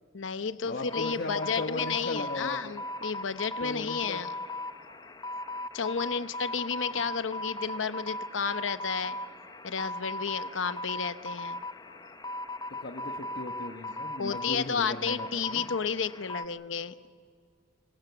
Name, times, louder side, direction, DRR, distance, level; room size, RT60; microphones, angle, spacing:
voice 1, 0.1-4.3 5.7-9.2 9.6-11.6 14.2-17.1, left 6 dB, 70° left, 12 dB, 0.8 m, -32 dB
voice 2, 0.6-2.6 3.6-4.2 12.8-15.7, left 2 dB, 55° left, 3 dB, 1.2 m, -37 dB
sound 1, 0.9-16.5, left 1 dB, 20° left, 0.7 m, -38 dB
24.5 x 21.0 x 7.0 m, 2.1 s
head